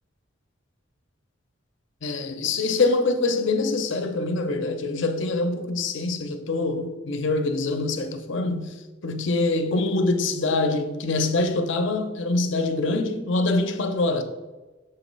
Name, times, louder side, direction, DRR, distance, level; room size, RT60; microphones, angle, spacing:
voice 1, 2.0-8.8 9.0-14.2, left 3 dB, 60° left, 0.6 m, -24 dB
6.9 x 3.0 x 5.3 m
head